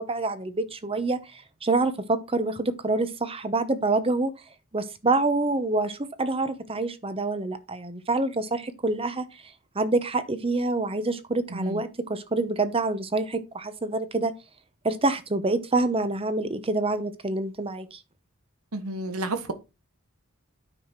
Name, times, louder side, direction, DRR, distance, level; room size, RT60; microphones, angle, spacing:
voice 1, 0.0-4.3 4.7-9.2 9.7-14.3 14.8-18.0, right 2 dB, 25° right, 0.9 m, -26 dB
voice 2, 11.5-11.8 18.7-19.5, right 2 dB, 85° right, 1.3 m, -31 dB
9.1 x 5.7 x 4.5 m
head